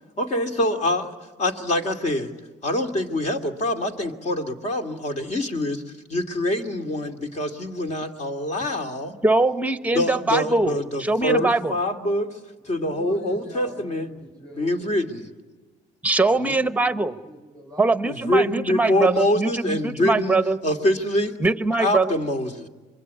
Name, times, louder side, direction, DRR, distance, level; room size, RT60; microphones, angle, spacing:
voice 1, 0.2-1.1 1.4-2.3 2.6-5.8 6.1-9.2 9.9-12.3 12.7-14.1 14.6-15.2 16.4-16.5 18.3-20.4 20.6-21.3 21.8-22.7, left 1 dB, 40° left, 5 dB, 2.5 m, -25 dB
voice 2, 9.2-11.8 16.0-17.1 17.8-20.6 21.4-22.1, right 2 dB, 10° right, 11 dB, 1.0 m, -22 dB
voice 3, 12.6-15.2 16.2-17.0 17.2-19.0 19.6-19.7, equal, 5° left, 1 dB, 5.2 m, -44 dB
25.5 x 23.0 x 8.5 m, 1.3 s
cardioid pair, 110°, 17 cm